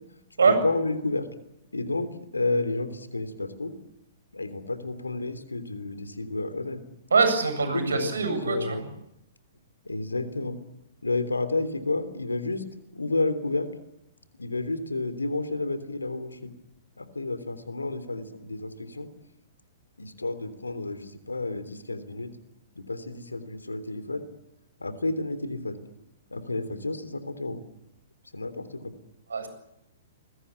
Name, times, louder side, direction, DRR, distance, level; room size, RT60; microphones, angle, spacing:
voice 1, 0.5-1.3 1.7-2.1 2.3-3.7 4.3-6.8 7.7-8.1 8.4-8.8 9.9-10.6 11.0-12.6 12.9-13.7 14.4-16.5 17.0-19.1 20.0-22.3 22.8-24.2 24.8-25.8 26.3-27.6 28.3-28.9, left 2 dB, 85° left, 12 dB, 3.4 m, -30 dB
voice 2, 7.1-8.8 29.3-29.5, right 4 dB, 75° right, 9 dB, 7.8 m, -23 dB
27.5 x 22.0 x 8.4 m, 0.83 s
figure-of-eight pair, 115°, 0 cm